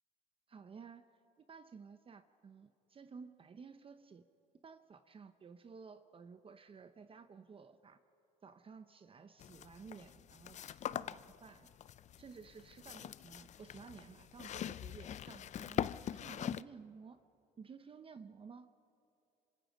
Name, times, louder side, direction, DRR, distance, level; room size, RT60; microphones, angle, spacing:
voice 1, 0.5-1.1 1.4-4.2 4.6-8.0 8.4-11.7 12.2-17.2 17.6-18.7, right 5 dB, 30° right, 10 dB, 0.8 m, -54 dB
sound 1, 9.4-16.6, left 10 dB, 45° left, 0.5 m, -43 dB
27.0 x 26.0 x 5.2 m, 2.7 s
cardioid pair, 110°, 17 cm